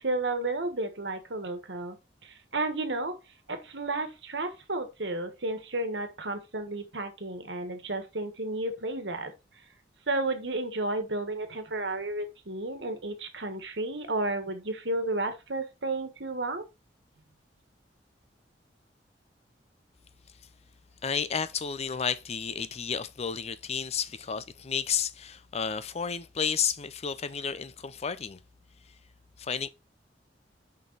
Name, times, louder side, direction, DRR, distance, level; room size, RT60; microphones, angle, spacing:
voice 1, 0.0-2.0 2.2-3.2 3.5-9.3 10.1-16.6, right 2 dB, 75° right, 1.5 m, -32 dB
voice 2, 21.0-28.4 29.4-29.7, left 7 dB, 35° left, 0.5 m, -32 dB
6.4 x 5.3 x 4.0 m
head